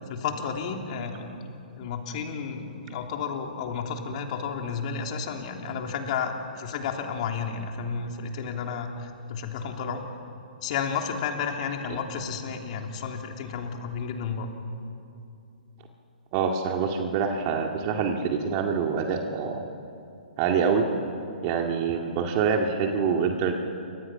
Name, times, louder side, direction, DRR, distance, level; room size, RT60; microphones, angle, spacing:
voice 1, 0.1-10.0 10.6-14.5 22.1-22.2, left 6 dB, 45° left, 3 dB, 3.1 m, -32 dB
voice 2, 16.3-19.6 20.4-20.9 21.4-23.5, right 6 dB, 35° right, 2 dB, 2.1 m, -25 dB
28.5 x 24.5 x 5.8 m, 2.6 s
hypercardioid pair, 130°, 5 cm